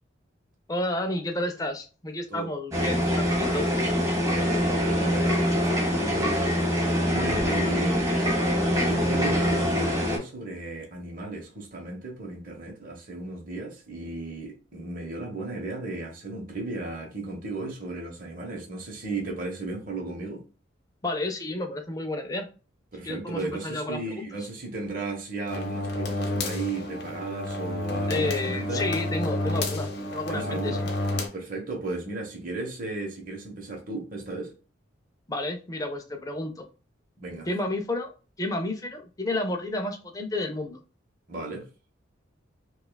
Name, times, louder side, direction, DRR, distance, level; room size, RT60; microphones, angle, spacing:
voice 1, 0.7-3.7 21.0-22.5 23.0-24.3 28.1-30.8 35.3-36.5 37.5-38.1 38.4-40.8, left 2 dB, 20° left, 0.4 m, -31 dB
sound 1, 2.7-10.2, equal, 15° right, 1.1 m, -24 dB
voice 2, 4.3-20.4 22.9-28.8 30.3-30.9 31.3-34.5 37.2-37.5 41.3-41.7, right 2 dB, 45° right, 1.0 m, -35 dB
sound 2, 25.5-31.3, left 2 dB, 55° left, 0.7 m, -30 dB
5.3 x 2.4 x 2.2 m
head